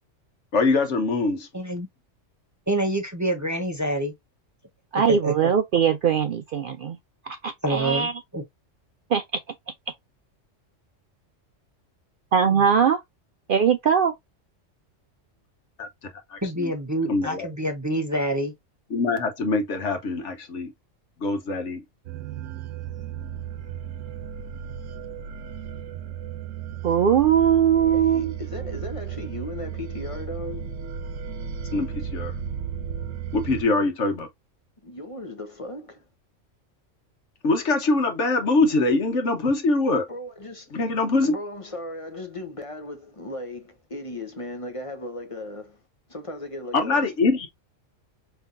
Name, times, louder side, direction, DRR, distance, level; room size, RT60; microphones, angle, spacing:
voice 1, 0.5-1.5 15.8-15.9 16.3-16.7 17.1-17.5 18.9-20.7 21.2-21.8 31.7-32.3 33.3-34.3 37.4-40.1 40.7-41.3 46.7-47.5, left 3 dB, 70° left, 1.4 m, -23 dB
voice 2, 1.5-1.9 2.7-4.1 4.9-5.5 7.6-8.4 12.5-12.6 16.4-18.5, right 1 dB, 15° right, 0.9 m, -27 dB
voice 3, 4.9-7.0 7.3-8.1 9.1-9.2 12.3-13.0 13.5-14.1 26.8-28.3, right 7 dB, 60° right, 0.6 m, -20 dB
sound 1, 22.1-33.6, right 8 dB, 85° right, 1.1 m, -34 dB
voice 4, 27.9-30.8 34.8-36.0 40.1-40.8 41.2-45.8 46.1-47.1, left 1 dB, 30° left, 0.9 m, -36 dB
5.4 x 3.3 x 2.6 m
omnidirectional pair, 1.3 m